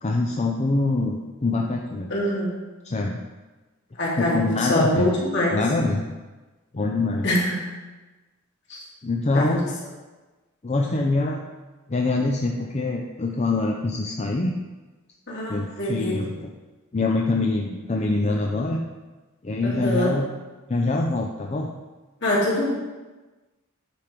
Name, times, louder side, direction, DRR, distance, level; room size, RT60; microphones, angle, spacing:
voice 1, 0.0-2.1 2.8-3.2 4.2-5.1 5.5-6.1 6.7-7.3 9.0-9.8 10.6-11.4 11.9-14.5 15.5-16.4 16.9-18.8 19.4-20.3 20.7-21.7, left 2 dB, 30° left, 0 dB, 0.5 m, -24 dB
voice 2, 2.1-2.5 4.0-5.6 7.2-7.6 8.7-8.8 9.3-9.6 15.3-16.2 19.6-20.2 22.2-22.7, left 1 dB, 55° left, -6 dB, 2.6 m, -24 dB
9.1 x 4.7 x 5.2 m, 1.2 s
head